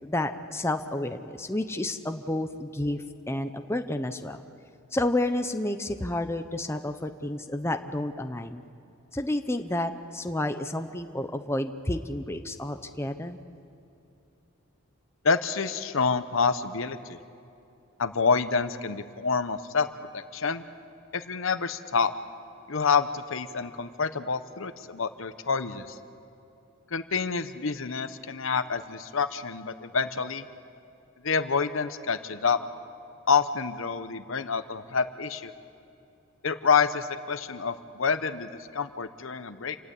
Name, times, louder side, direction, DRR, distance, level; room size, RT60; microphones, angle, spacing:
voice 1, 0.0-4.4 4.9-8.6 9.1-13.4, left 1 dB, 10° left, 7 dB, 0.8 m, -30 dB
voice 2, 15.2-17.2 18.0-19.9 20.1-20.6 21.1-22.1 22.7-25.9 26.9-30.4 31.2-32.6 33.3-35.5 36.4-39.8, left 5 dB, 65° left, 11 dB, 0.9 m, -27 dB
28.5 x 18.0 x 8.5 m, 2.7 s
head